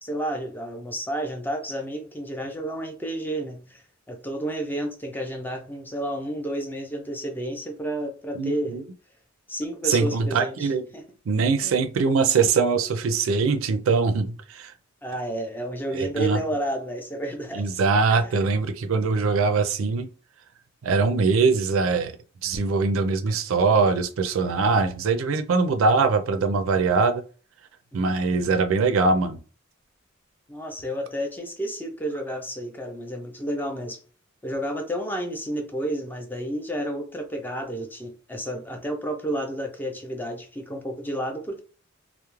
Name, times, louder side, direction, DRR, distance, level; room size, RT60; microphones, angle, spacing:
voice 1, 0.0-8.8 9.5-11.0 11.6-11.8 15.0-17.7 18.1-18.4 27.9-28.1 30.5-34.0 34.4-41.6, right 1 dB, 10° left, 0.4 m, -31 dB
voice 2, 8.4-8.8 9.8-10.8 11.3-14.7 15.9-16.4 17.5-20.1 20.8-22.1 22.4-27.2 27.9-29.4, right 4 dB, 80° right, 0.4 m, -22 dB
2.3 x 2.0 x 3.0 m
head